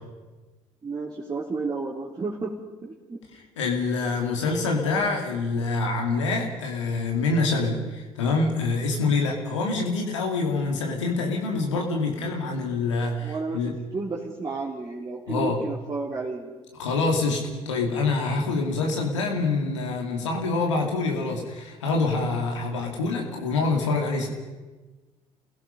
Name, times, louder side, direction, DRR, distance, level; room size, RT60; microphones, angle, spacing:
voice 1, 0.8-2.5 2.8-3.2 13.2-13.6 13.9-16.5, right 3 dB, 25° right, -5 dB, 3.3 m, -32 dB
voice 2, 3.6-13.8 15.3-15.6 16.8-24.3, left 3 dB, 80° left, 1 dB, 2.8 m, -26 dB
28.5 x 17.0 x 5.4 m, 1.2 s
figure-of-eight pair, 55°, 15 cm